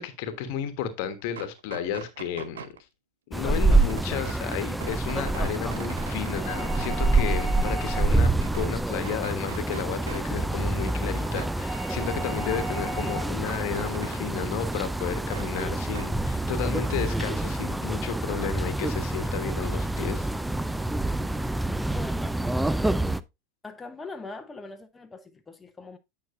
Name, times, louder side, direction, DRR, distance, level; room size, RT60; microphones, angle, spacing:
voice 1, 0.0-2.7 3.3-20.3, left 8 dB, 60° left, 1.2 m, -33 dB
sound 1, 1.2-2.8 3.5-7.0 7.4-8.7 9.0-10.2 10.5-14.2 14.5-16.1 16.4-17.3, right 8 dB, 75° right, 0.6 m, -43 dB
sound 2, 3.3-23.2, right 2 dB, 5° right, 0.4 m, -27 dB
sound 3, 6.4-8.3 11.6-13.4, right 2 dB, 30° right, 3.4 m, -37 dB
voice 2, 21.8-22.3 23.6-26.0, left 3 dB, 15° left, 0.9 m, -41 dB
9.4 x 6.0 x 2.6 m
hypercardioid pair, 90°, 0 cm